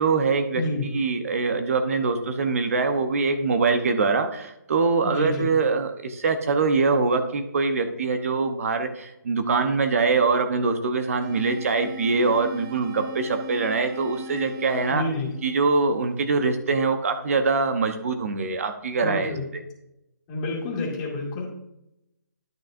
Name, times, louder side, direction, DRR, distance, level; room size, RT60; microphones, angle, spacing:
voice 1, 0.0-0.6 0.9-15.0 15.4-19.6, right 4 dB, 50° right, 7 dB, 0.9 m, -23 dB
voice 2, 0.5-0.9 5.0-5.5 14.9-15.3 19.0-19.4 20.3-21.5, left 2 dB, 20° left, -2 dB, 2.1 m, -28 dB
sound 1, 11.2-16.2, equal, 15° right, 0.5 m, -40 dB
12.0 x 6.2 x 2.6 m, 0.83 s
hypercardioid pair, 165°, 10 cm